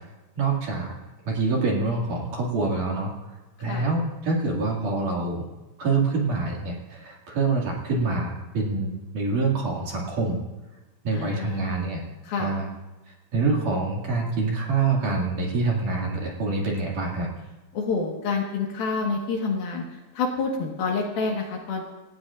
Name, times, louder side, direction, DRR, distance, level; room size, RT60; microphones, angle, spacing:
voice 1, 0.4-0.9 1.3-5.4 5.8-10.4 11.0-12.0 12.4-12.7 13.3-17.3, right 3 dB, 50° right, -2 dB, 3.3 m, -26 dB
voice 2, 11.1-11.8 12.2-12.5 17.7-21.9, left 4 dB, 60° left, 0 dB, 2.9 m, -28 dB
27.0 x 15.5 x 2.5 m, 1.1 s
omnidirectional pair, 5.4 m